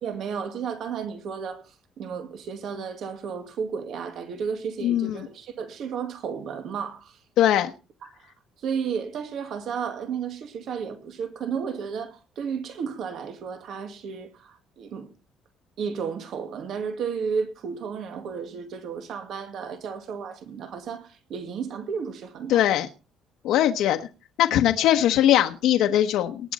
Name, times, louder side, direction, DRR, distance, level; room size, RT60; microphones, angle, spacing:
voice 1, 0.0-7.2 8.0-8.3 8.6-15.1 15.8-22.6, right 6 dB, 50° right, 2.1 m, -33 dB
voice 2, 4.8-5.1 7.4-7.7 22.5-22.9 23.4-24.0 24.4-26.4, left 12 dB, 75° left, 1.1 m, -20 dB
19.0 x 10.0 x 4.2 m
cardioid pair, 175°, 0 cm